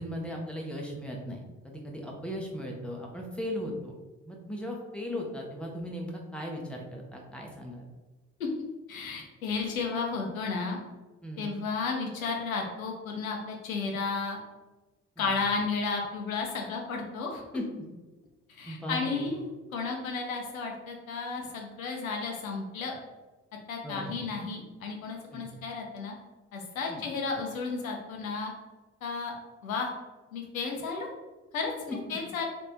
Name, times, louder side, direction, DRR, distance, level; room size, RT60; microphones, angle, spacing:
voice 1, 0.0-3.9 4.3-7.8 11.2-11.6 15.2-15.3 17.5-17.6 18.7-19.2 23.8-24.2 25.3-25.5 26.9-27.0 31.9-32.0, equal, 5° left, -1 dB, 0.9 m, -37 dB
voice 2, 8.9-10.8 11.4-14.4 15.2-17.4 18.5-22.9 23.7-26.1 26.5-28.5 29.0-29.3 29.6-29.9 30.3-31.1 31.5-32.4, left 4 dB, 80° left, 1 dB, 0.7 m, -33 dB
3.2 x 2.5 x 4.4 m, 1.2 s
figure-of-eight pair, 40°, 40 cm